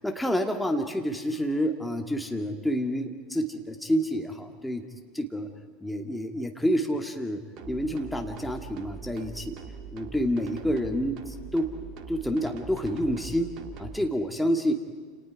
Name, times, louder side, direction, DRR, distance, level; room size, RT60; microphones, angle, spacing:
voice 1, 0.0-4.8 5.1-5.5 5.8-7.4 7.7-9.6 9.9-11.7 12.1-13.5 13.8-14.7, equal, 5° left, 3 dB, 2.4 m, -28 dB
sound 1, 7.6-14.0, right 6 dB, 45° right, 2.2 m, -42 dB
29.5 x 29.0 x 4.9 m, 1.4 s
figure-of-eight pair, 75°, 0 cm